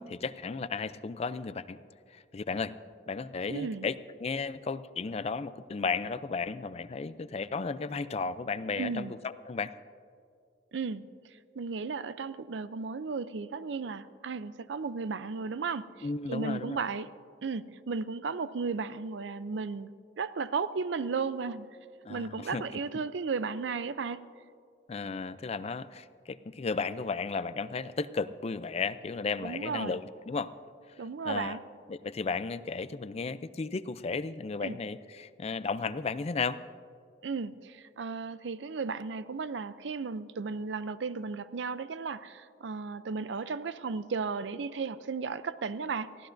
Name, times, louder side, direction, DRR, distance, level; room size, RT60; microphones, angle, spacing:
voice 1, 0.0-1.8 2.1-2.7 3.1-9.7 16.0-16.8 22.0-22.6 24.9-30.5 31.2-31.6 31.9-36.6, left 4 dB, 35° left, 14 dB, 0.4 m, -34 dB
voice 2, 3.5-3.9 8.8-9.1 10.7-11.0 11.6-17.1 17.4-19.9 20.2-21.7 22.1-24.3 29.4-30.0 31.0-31.6 34.6-34.8 37.2-46.3, right 4 dB, 85° right, 15 dB, 0.5 m, -35 dB
23.0 x 15.5 x 2.6 m, 2.3 s
head